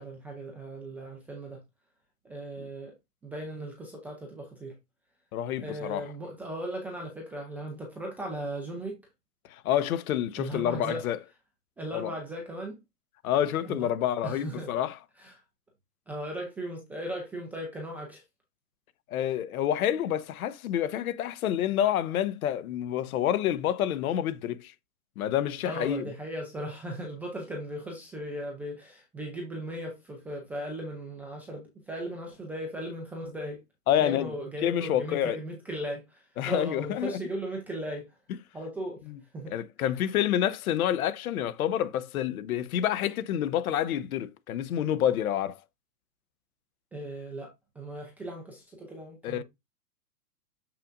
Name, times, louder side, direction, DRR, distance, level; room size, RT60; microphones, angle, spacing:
voice 1, 0.0-1.6 2.2-2.9 3.2-4.7 5.6-9.0 10.4-11.0 11.8-12.8 13.6-13.9 14.2-14.7 15.2-15.4 16.1-18.2 25.6-33.6 34.0-38.1 38.5-39.0 39.3-39.5 46.9-49.4, right 1 dB, 5° right, 0.4 m, -37 dB
voice 2, 5.3-6.0 9.5-11.2 11.9-12.1 13.2-14.9 19.1-24.7 25.2-26.1 33.9-34.3 34.6-35.4 36.4-37.1 39.1-39.2 39.5-45.6 49.2-49.4, left 10 dB, 60° left, 0.9 m, -28 dB
6.7 x 5.8 x 2.5 m
hypercardioid pair, 135°, 48 cm